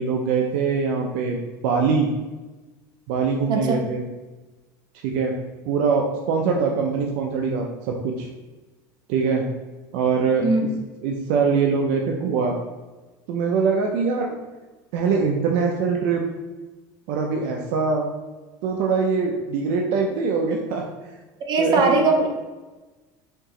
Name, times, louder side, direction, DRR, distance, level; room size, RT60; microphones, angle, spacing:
voice 1, 0.0-2.1 3.1-4.0 5.0-5.3 5.7-8.3 9.1-9.4 9.9-10.5 11.0-12.6 13.3-14.4 14.9-16.2 17.1-18.1 18.6-20.8 21.6-22.3, right 5 dB, 70° right, 1 dB, 0.5 m, -23 dB
voice 2, 21.5-22.3, right 3 dB, 45° right, 2 dB, 0.8 m, -20 dB
4.5 x 2.9 x 3.7 m, 1.2 s
supercardioid pair, 125°, 10 cm